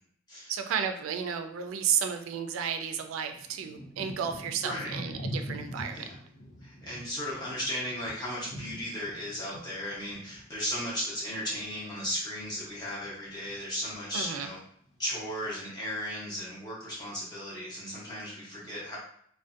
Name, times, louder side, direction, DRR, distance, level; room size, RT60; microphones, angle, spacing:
voice 1, 0.5-6.1 14.1-14.5, right 7 dB, 90° right, 7 dB, 0.3 m, -32 dB
Thunder / Rain, 3.1-12.5 12.8-13.7 14.2-14.6 14.8-15.7 16.3-16.4, equal, 75° left, 0.7 m, -44 dB
voice 2, 4.6-4.9 5.9-6.1 6.6-14.6 15.0-19.0, equal, 20° left, -7 dB, 0.9 m, -35 dB
2.5 x 2.1 x 2.4 m, 0.64 s
head